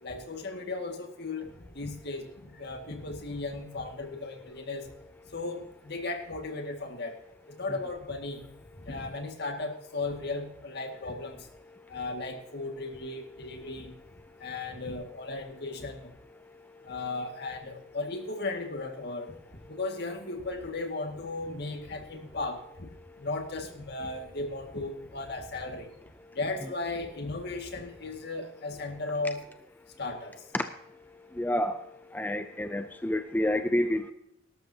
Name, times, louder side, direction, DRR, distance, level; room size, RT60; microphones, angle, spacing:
voice 1, 0.0-4.9 5.3-7.2 7.6-8.4 8.8-11.5 11.9-13.9 14.4-16.1 16.8-19.3 19.7-22.9 23.2-25.9 26.3-29.4 30.0-30.5, left 3 dB, 60° left, 4 dB, 2.1 m, -36 dB
voice 2, 31.3-31.8 32.1-34.1, left 1 dB, 10° left, 8 dB, 0.5 m, -28 dB
18.5 x 12.5 x 2.9 m, 0.81 s
head